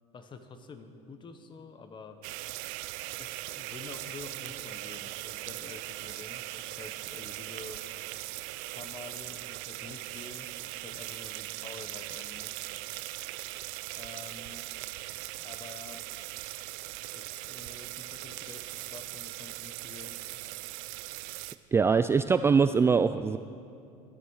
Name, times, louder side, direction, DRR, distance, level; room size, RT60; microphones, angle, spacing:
voice 1, 0.1-2.4 3.2-7.8 8.7-12.7 13.9-14.7 15.4-16.1 17.1-20.2, left 4 dB, 30° left, 8 dB, 1.3 m, -48 dB
sound 1, 2.2-21.6, right 17 dB, 75° right, 0.5 m, -40 dB
voice 2, 21.7-23.4, right 5 dB, 15° right, 11 dB, 0.3 m, -23 dB
14.5 x 12.5 x 6.5 m, 2.5 s
supercardioid pair, 120°, 16 cm